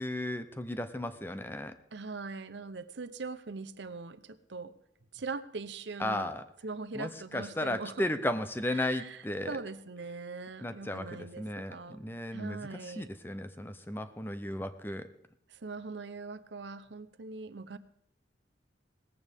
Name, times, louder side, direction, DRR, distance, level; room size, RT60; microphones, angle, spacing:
voice 1, 0.0-1.7 6.0-6.4 6.9-9.6 10.6-15.1, left 1 dB, 10° left, 11 dB, 0.6 m, -35 dB
voice 2, 1.9-4.7 5.1-6.3 6.6-8.1 8.8-9.2 9.5-12.0 12.3-13.1 15.5-17.8, right 4 dB, 70° right, 13 dB, 0.8 m, -41 dB
18.0 x 14.5 x 3.6 m, 0.72 s
head